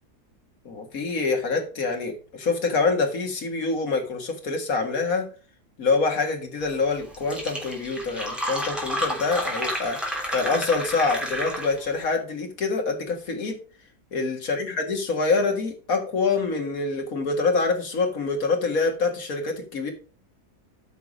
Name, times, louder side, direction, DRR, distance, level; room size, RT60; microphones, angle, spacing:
voice 1, 0.7-5.3 5.8-10.0 10.3-13.6 14.1-19.9, left 4 dB, 60° left, 3 dB, 2.2 m, -25 dB
Fill (with liquid), 6.8-6.9 7.1-11.9, equal, ahead, 3.0 m, -30 dB
9.4 x 5.9 x 4.9 m, 0.39 s
omnidirectional pair, 1.7 m